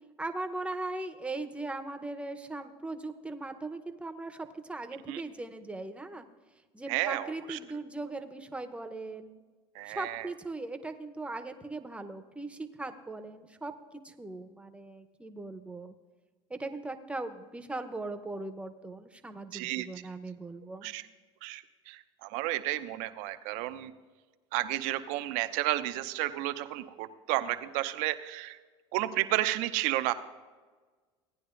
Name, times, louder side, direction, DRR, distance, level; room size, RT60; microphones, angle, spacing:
voice 1, 0.2-6.3 6.7-9.4 9.9-13.7 14.0-16.0 16.5-20.9, right 2 dB, 10° right, 7 dB, 0.8 m, -39 dB
voice 2, 6.9-7.6 9.7-10.3 19.5-19.9 20.8-21.0 21.4-23.9 24.5-28.6 28.9-30.1, right 16 dB, 65° right, 11 dB, 0.7 m, -32 dB
17.0 x 9.9 x 2.5 m, 1.4 s
hypercardioid pair, 90°, 14 cm